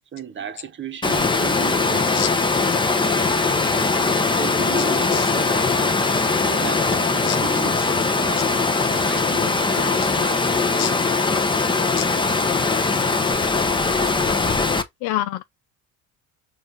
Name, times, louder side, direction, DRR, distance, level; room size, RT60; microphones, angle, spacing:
voice 1, 0.1-2.4 3.0-4.0 4.4-7.9 8.2-10.7, right 8 dB, 30° right, 1.0 m, -36 dB
Water, 1.0-14.8, left 4 dB, 10° left, 0.7 m, -21 dB
voice 2, 15.0-15.4, left 12 dB, 80° left, 0.6 m, -26 dB
6.9 x 2.7 x 5.3 m
cardioid pair, 160°, 39 cm